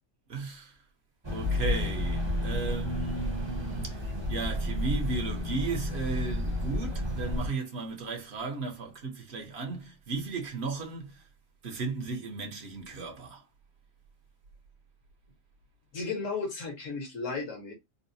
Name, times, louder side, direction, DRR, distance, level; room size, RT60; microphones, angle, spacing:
voice 1, 0.3-0.8 1.3-11.3 11.6-13.4, right 4 dB, 60° right, 1.2 m, -35 dB
sound 1, 1.2-7.5, left 1 dB, 25° right, 0.7 m, -31 dB
voice 2, 15.9-17.7, left 4 dB, 80° left, 1.7 m, -34 dB
3.9 x 2.2 x 2.7 m
omnidirectional pair, 1.3 m